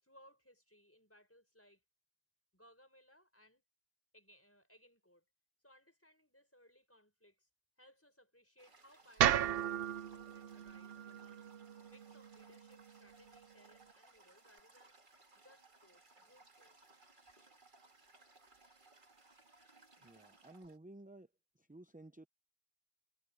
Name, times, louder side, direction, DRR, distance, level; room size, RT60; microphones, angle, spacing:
voice 1, 0.0-1.8 2.5-3.6 4.1-5.2 5.6-7.5 7.8-11.5 11.8-15.0 15.4-16.7, equal, 10° left, 4.8 m, -65 dB
Toilet flush, 8.6-20.8, right 3 dB, 50° right, 2.1 m, -64 dB
sound 1, 9.2-13.4, right 11 dB, 65° right, 0.7 m, -36 dB
voice 2, 20.0-21.3 21.7-22.3, right 1 dB, 10° right, 0.5 m, -54 dB
omnidirectional pair, 1.1 m